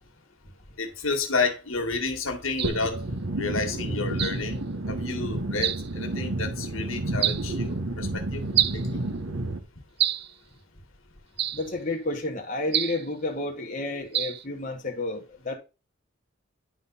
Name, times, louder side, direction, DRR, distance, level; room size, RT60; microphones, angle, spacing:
voice 1, 0.8-8.5 8.7-9.0, left 4 dB, 75° left, 1.9 m, -31 dB
sound 1, 2.6-2.8 4.2-4.4 5.6-5.9 7.2-7.5 8.6-8.9 10.0-10.3 11.4-11.7 12.7-13.1 14.1-14.4, right 11 dB, 50° right, 0.4 m, -26 dB
sound 2, 2.6-9.6, right 2 dB, 70° right, 1.1 m, -30 dB
voice 2, 11.5-15.6, left 2 dB, 35° left, 1.4 m, -31 dB
10.5 x 3.9 x 5.5 m
head